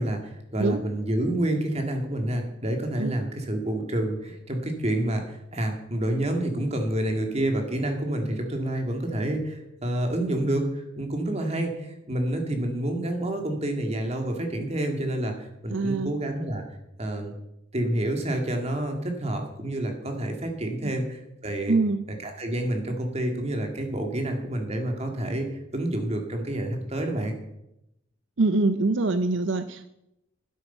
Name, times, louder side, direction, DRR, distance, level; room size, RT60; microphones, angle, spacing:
voice 1, 0.0-16.6 17.0-17.3 17.7-21.7 22.2-27.3, right 1 dB, 35° right, 3 dB, 2.3 m, -28 dB
voice 2, 15.7-16.1 21.7-22.0 28.4-29.9, right 3 dB, 80° right, 11 dB, 0.6 m, -24 dB
12.5 x 10.0 x 5.7 m, 0.84 s
head